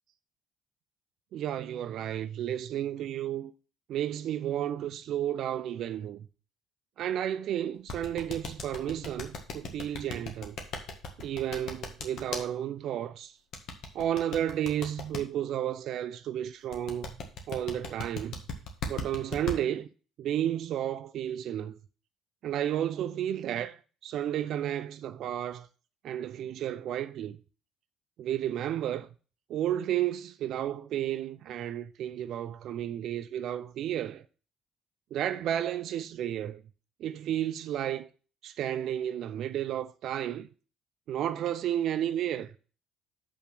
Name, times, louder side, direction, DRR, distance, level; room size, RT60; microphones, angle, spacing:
voice 1, 1.3-3.5 3.9-6.3 7.0-10.6 11.2-13.3 13.9-17.2 17.5-18.4 18.9-19.9 20.2-21.8 22.4-25.7 26.0-27.4 28.2-29.1 29.5-34.3 35.1-36.6 37.0-38.1 38.4-40.5 41.1-42.5, right 11 dB, 60° right, 0.6 m, -32 dB
sound 1, 7.9-12.4 13.5-15.2 16.7-19.6, left 4 dB, 60° left, 1.7 m, -36 dB
6.3 x 5.7 x 6.0 m
hypercardioid pair, 55°, 0 cm